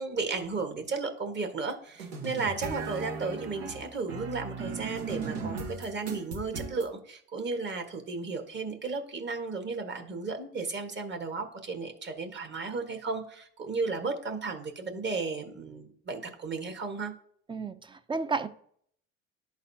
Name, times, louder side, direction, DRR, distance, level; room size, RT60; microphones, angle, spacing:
voice 1, 0.0-17.1, right 4 dB, 35° right, 1.4 m, -34 dB
sound 1, 2.0-6.9, right 4 dB, 90° right, 1.2 m, -37 dB
voice 2, 17.5-18.5, right 4 dB, 15° right, 0.5 m, -32 dB
11.5 x 4.0 x 2.8 m
supercardioid pair, 85°, 30 cm